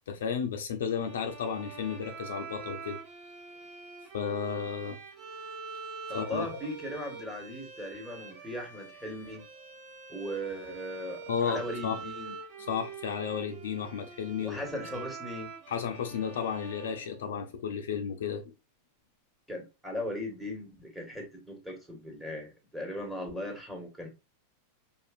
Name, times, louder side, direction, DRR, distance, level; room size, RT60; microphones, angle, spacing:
voice 1, 0.1-3.0 4.1-5.0 6.1-6.5 11.3-12.0 12.7-14.6 15.7-18.5, left 7 dB, 60° left, 0.6 m, -33 dB
sound 1, 0.9-17.7, right 5 dB, 45° right, 1.1 m, -45 dB
voice 2, 6.1-9.4 10.1-12.3 14.4-15.5 19.5-24.1, equal, 5° right, 1.4 m, -38 dB
5.0 x 2.4 x 2.5 m
figure-of-eight pair, 90°, 0 cm